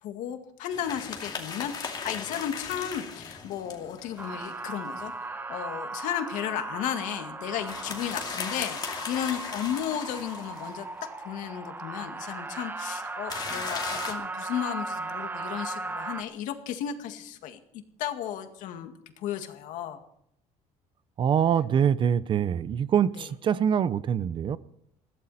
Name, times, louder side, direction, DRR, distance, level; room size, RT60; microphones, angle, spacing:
voice 1, 0.0-10.9 11.2-17.6 18.0-20.0 23.2-23.3, left 10 dB, 80° left, 6 dB, 2.0 m, -34 dB
sound 1, 0.7-5.1 7.5-10.8 13.3-14.1, left 5 dB, 35° left, 2.6 m, -37 dB
sound 2, 4.2-16.2, right 3 dB, 15° right, 1.0 m, -37 dB
voice 2, 21.2-24.6, right 8 dB, 40° right, 16 dB, 0.7 m, -24 dB
21.0 x 15.5 x 4.2 m, 0.72 s
cardioid pair, 150°, 13 cm